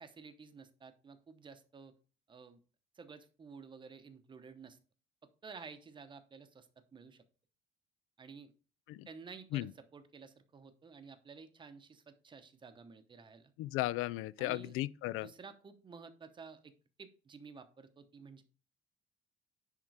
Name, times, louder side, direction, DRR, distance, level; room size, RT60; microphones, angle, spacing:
voice 1, 0.0-1.9 2.3-2.6 3.0-4.8 5.4-7.2 8.2-8.5 9.1-13.5 14.4-14.7 15.2-16.7 17.0-18.4, right 5 dB, 25° right, 0.8 m, -52 dB
voice 2, 13.6-15.3, left 17 dB, 90° left, 0.4 m, -35 dB
10.5 x 3.7 x 4.8 m
cardioid pair, 160°, 21 cm